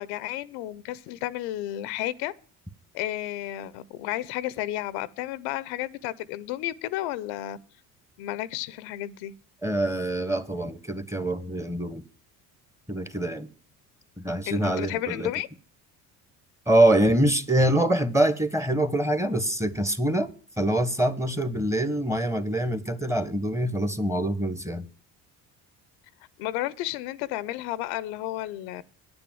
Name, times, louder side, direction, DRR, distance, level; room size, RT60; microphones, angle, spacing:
voice 1, 0.0-2.3 2.9-7.6 8.2-9.3 14.5-15.5 26.4-28.8, left 14 dB, 85° left, 0.7 m, -32 dB
voice 2, 9.6-12.0 12.9-13.5 14.2-15.3 16.7-24.9, right 1 dB, 5° right, 1.4 m, -25 dB
10.0 x 7.0 x 7.7 m
supercardioid pair, 70°, 39 cm